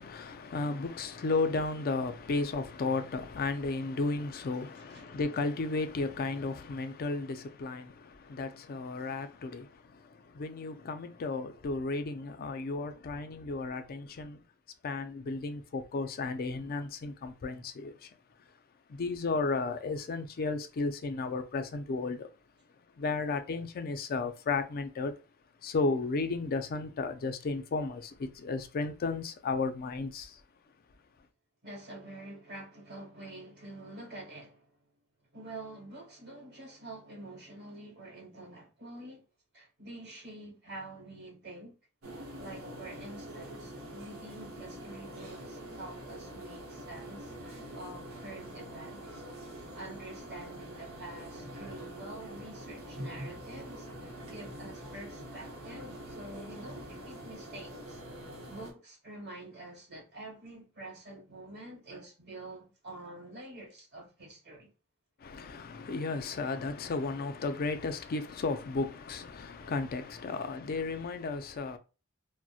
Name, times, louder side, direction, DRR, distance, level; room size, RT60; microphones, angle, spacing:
voice 1, 0.0-14.4 14.8-18.1 18.9-22.3 23.0-25.1 25.6-30.4 65.2-71.8, left 3 dB, 45° left, 0.4 m, -34 dB
voice 2, 4.7-5.2 31.6-34.7 35.3-39.2 39.5-41.8 42.4-49.2 49.7-58.0 58.5-64.7 70.3-70.4, right 2 dB, 50° right, 1.4 m, -47 dB
sound 1, 42.0-58.7, equal, 85° right, 0.8 m, -45 dB
2.7 x 2.1 x 2.3 m
head